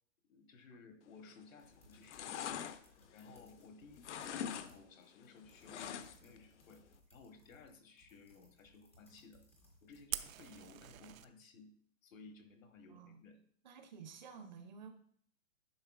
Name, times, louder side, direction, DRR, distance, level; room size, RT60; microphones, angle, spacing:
voice 1, 0.2-2.7 3.1-6.8 7.1-9.5 9.8-11.7 12.0-13.4, left 4 dB, 75° left, 6 dB, 1.3 m, -58 dB
sound 1, 1.2-1.6 1.9-3.7 4.0-4.7 5.0-6.4 6.7-6.8, left 9 dB, 60° left, 0.6 m, -43 dB
sound 2, 1.6-10.0, left 1 dB, 10° left, 0.3 m, -66 dB
Fire, 10.1-11.2, right 12 dB, 80° right, 0.6 m, -43 dB
voice 2, 13.6-14.9, right 6 dB, 35° right, 7 dB, 0.6 m, -52 dB
10.5 x 4.3 x 2.4 m, 0.62 s
hypercardioid pair, 160°, 40 cm